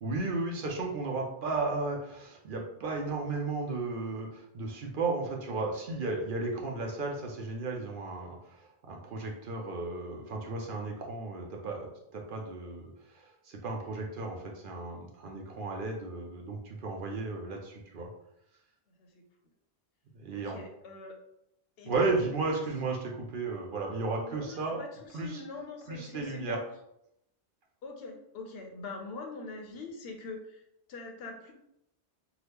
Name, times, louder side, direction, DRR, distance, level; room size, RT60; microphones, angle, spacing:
voice 1, 0.0-18.1 20.1-20.6 21.8-24.8 25.1-25.4 25.9-26.6, right 3 dB, 60° right, 0 dB, 0.6 m, -34 dB
voice 2, 20.3-21.1 21.8-22.6 24.2-26.6 27.8-30.6 30.9-31.5, left 3 dB, 70° left, 3 dB, 0.8 m, -43 dB
2.9 x 2.3 x 3.4 m, 0.80 s
omnidirectional pair, 1.1 m